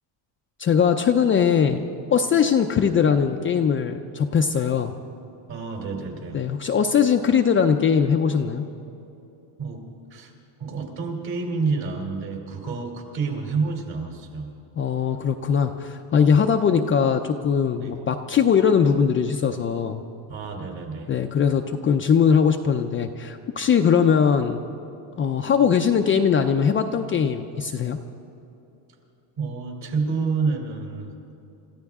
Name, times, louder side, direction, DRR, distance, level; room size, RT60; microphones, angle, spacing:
voice 1, 0.6-1.8 2.1-4.9 6.3-8.6 14.8-20.0 21.1-24.6 25.2-28.0, left 7 dB, 30° left, 5 dB, 0.4 m, -20 dB
voice 2, 5.5-6.4 9.6-9.8 10.1-10.3 10.6-14.5 16.3-16.4 17.8-17.9 20.3-21.1 29.4-31.1, right 4 dB, 50° right, 2 dB, 3.1 m, -29 dB
26.0 x 14.5 x 3.6 m, 2.9 s
cardioid pair, 150°, 46 cm